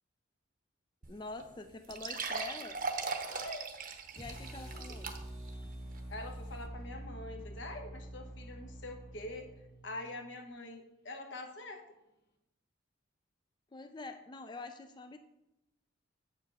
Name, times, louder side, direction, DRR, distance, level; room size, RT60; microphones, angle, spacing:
sound 1, 1.0-1.1 1.4-1.5 1.9-5.5 6.0-6.1 6.6-6.7, right 4 dB, 45° right, 0.8 m, -39 dB
voice 1, 1.1-2.8 4.2-5.2 13.7-15.2, left 3 dB, 20° left, 8 dB, 0.3 m, -46 dB
voice 2, 3.3-3.7 4.7-4.8 6.1-9.5 9.8-11.8, left 2 dB, 65° left, 5 dB, 1.1 m, -44 dB
sound 2, 4.1-10.3, right 1 dB, 50° left, 1.8 m, -46 dB
7.6 x 5.1 x 5.4 m, 0.88 s
head